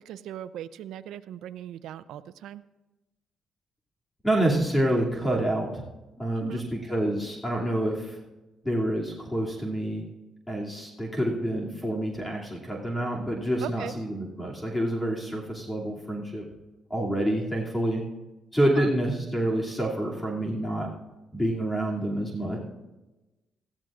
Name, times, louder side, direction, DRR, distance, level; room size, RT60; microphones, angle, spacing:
voice 1, 0.1-2.6 6.4-6.6 13.6-13.9 18.8-18.9, right 11 dB, 85° right, 14 dB, 0.5 m, -39 dB
voice 2, 4.2-5.8 6.2-8.2 8.6-10.0 10.5-16.4 16.9-18.0 18.5-20.9 21.3-22.6, right 1 dB, 15° left, -2 dB, 2.6 m, -27 dB
18.0 x 14.5 x 2.5 m, 1.1 s
cardioid pair, 90°, 0 cm